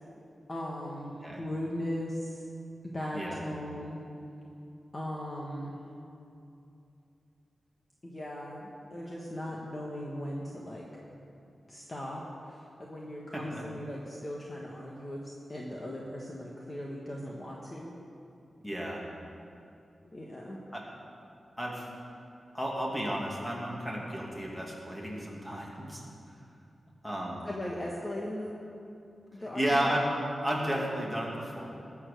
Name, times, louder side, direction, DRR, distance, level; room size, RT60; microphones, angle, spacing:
voice 1, 0.5-2.5 2.8-4.0 4.9-5.8 8.0-10.8 11.7-17.9 20.1-20.6 27.4-28.5 29.3-29.9, left 1 dB, 25° left, -3 dB, 1.4 m, -38 dB
voice 2, 3.1-3.5 13.3-13.6 18.6-19.0 20.7-20.8 21.6-21.9 22.5-26.0 27.0-27.5 29.5-30.0 30.4-31.7, right 1 dB, 5° left, -3 dB, 2.4 m, -33 dB
19.5 x 7.3 x 6.7 m, 2.7 s
wide cardioid pair, 165°, 0 cm